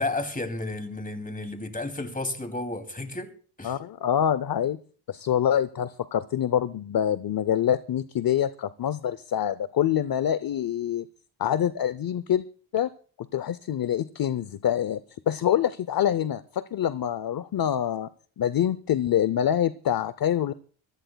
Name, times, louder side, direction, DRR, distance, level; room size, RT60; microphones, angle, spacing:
voice 1, 0.0-3.3 3.6-3.8, left 2 dB, 15° left, 2.6 m, -32 dB
voice 2, 3.6-4.8 5.1-11.1 11.4-12.4 12.7-12.9 13.3-18.1 18.4-20.5, left 10 dB, 50° left, 0.6 m, -25 dB
26.0 x 16.0 x 2.3 m
cardioid pair, 90°, 48 cm